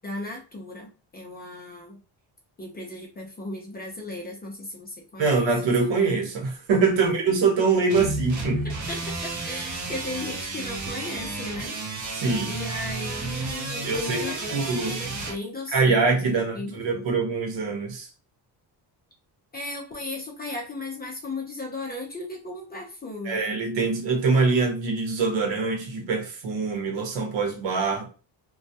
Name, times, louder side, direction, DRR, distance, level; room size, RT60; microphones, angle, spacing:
voice 1, 0.0-2.0 2.6-5.5 6.9-7.1 8.6-12.0 12.4-17.1 19.5-23.4, left 2 dB, 20° left, 0.4 m, -36 dB
voice 2, 5.2-8.7 12.2-12.5 13.9-15.0 15.7-18.1 23.2-28.1, right 4 dB, 75° right, 0.9 m, -24 dB
sound 1, 7.9-15.4, right 3 dB, 45° right, 0.6 m, -32 dB
2.2 x 2.1 x 2.7 m
cardioid pair, 165°, 44 cm